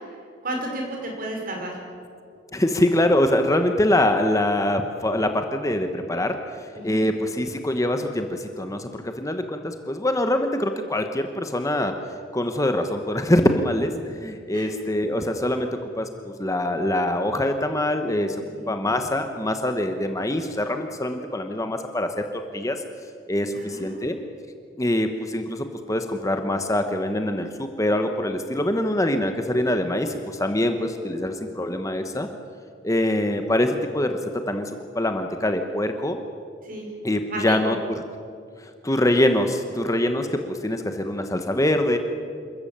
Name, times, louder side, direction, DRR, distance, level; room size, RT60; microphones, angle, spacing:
voice 1, 0.4-1.8 6.7-7.1 14.5-14.7 18.6-18.7 23.5-24.1 31.0-31.4 36.6-36.9 37.3-37.8, right 1 dB, 50° right, 1 dB, 5.3 m, -33 dB
voice 2, 2.5-6.4 6.8-11.9 12.3-15.7 16.0-18.4 18.7-22.3 22.5-22.8 23.3-24.2 24.8-32.3 32.8-34.2 34.5-36.2 37.0-38.0 38.8-42.0, left 1 dB, 15° left, 6 dB, 1.1 m, -24 dB
27.5 x 14.0 x 8.8 m, 2.3 s
head